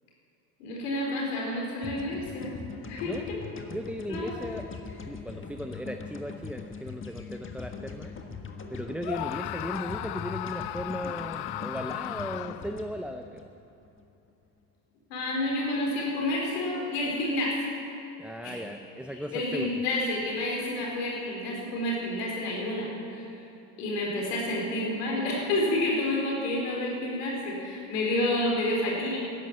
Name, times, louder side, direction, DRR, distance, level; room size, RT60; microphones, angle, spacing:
voice 1, 0.6-2.6 2.9-3.4 4.1-4.3 15.1-17.6 18.4-18.7 19.3-23.2 23.8-29.2, left 1 dB, 85° left, -2 dB, 4.7 m, -29 dB
sound 1, 1.8-14.0, left 5 dB, 25° left, 1.6 m, -41 dB
voice 2, 3.7-4.7 5.1-8.1 8.7-13.5 18.2-19.7, equal, ahead, 6 dB, 0.5 m, -37 dB
Screaming, 9.0-12.8, left 14 dB, 55° left, 0.7 m, -36 dB
13.5 x 11.0 x 8.9 m, 2.9 s
hypercardioid pair, 75°, 47 cm